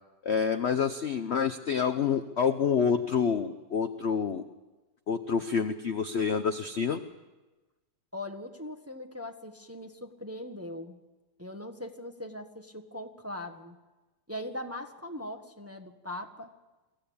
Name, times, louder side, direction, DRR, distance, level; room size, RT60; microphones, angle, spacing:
voice 1, 0.2-4.4 5.1-7.0, left 6 dB, 55° left, 8 dB, 0.8 m, -28 dB
voice 2, 8.1-11.0 11.4-13.8 14.3-16.5, left 1 dB, 10° right, 5 dB, 1.1 m, -40 dB
23.0 x 15.0 x 8.6 m, 1.2 s
omnidirectional pair, 2.0 m